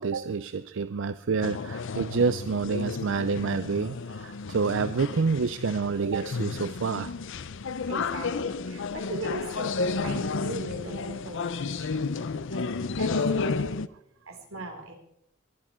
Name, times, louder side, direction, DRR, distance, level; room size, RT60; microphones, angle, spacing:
voice 1, 0.0-7.1, right 5 dB, 65° right, 13 dB, 0.5 m, -28 dB
sound 1, 1.4-13.9, left 4 dB, 65° left, 0.6 m, -32 dB
voice 2, 7.9-12.1 12.5-12.7 13.0-13.2 14.3-14.9, right 1 dB, 85° right, 3 dB, 3.7 m, -38 dB
22.5 x 11.0 x 4.4 m, 0.73 s
head